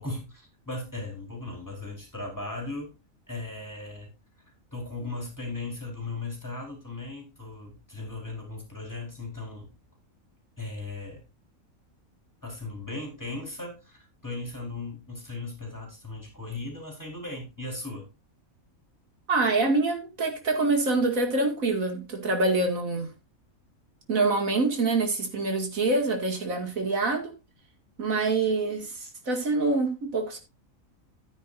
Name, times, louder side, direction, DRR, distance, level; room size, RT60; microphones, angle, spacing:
voice 1, 0.0-2.9 3.3-4.1 4.7-9.7 10.6-11.2 12.4-18.1, left 2 dB, 15° left, 4.4 m, -37 dB
voice 2, 19.3-23.1 24.1-27.3 28.0-30.4, right 3 dB, 75° right, 2.6 m, -25 dB
12.5 x 9.6 x 2.6 m
omnidirectional pair, 1.5 m